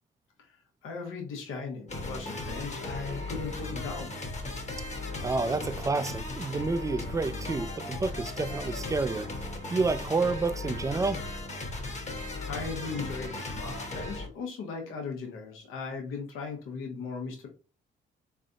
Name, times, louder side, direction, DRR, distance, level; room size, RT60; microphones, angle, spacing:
voice 1, 0.8-4.1 12.0-17.5, left 5 dB, 85° left, 1.0 m, -38 dB
sound 1, 1.9-14.3, left 2 dB, 35° left, 1.1 m, -37 dB
voice 2, 5.2-9.3 9.7-11.2, right 3 dB, 15° right, 0.4 m, -29 dB
3.6 x 3.3 x 2.6 m
supercardioid pair, 65°, 21 cm